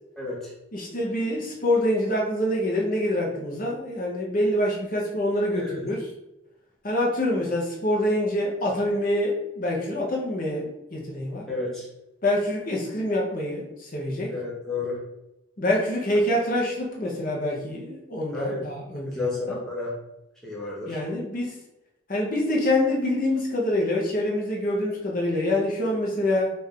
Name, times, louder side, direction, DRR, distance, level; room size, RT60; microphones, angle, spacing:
voice 1, 0.2-0.5 5.6-5.8 11.5-11.9 14.3-15.0 18.3-18.7 19.1-20.0 20.4-21.0, left 3 dB, ahead, -5 dB, 0.6 m, -31 dB
voice 2, 0.7-6.0 6.8-11.5 12.2-14.3 15.6-19.6 20.9-21.6 22.1-26.5, left 1 dB, 40° left, -2 dB, 0.8 m, -26 dB
3.3 x 2.6 x 3.5 m, 0.89 s
head